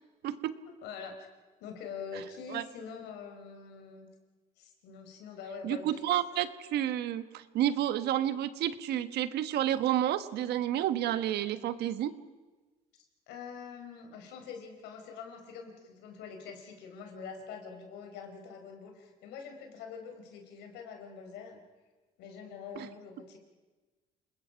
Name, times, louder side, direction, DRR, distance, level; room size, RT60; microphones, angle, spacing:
voice 1, 0.2-0.6 2.5-2.6 5.6-12.1 22.7-22.9, right 11 dB, 75° right, 13 dB, 1.3 m, -30 dB
voice 2, 0.8-1.3 1.6-4.1 4.6-6.1 13.3-21.6 22.2-23.4, left 6 dB, 90° left, 4 dB, 4.4 m, -45 dB
29.0 x 20.5 x 5.8 m, 1.2 s
cardioid pair, 110°, 17 cm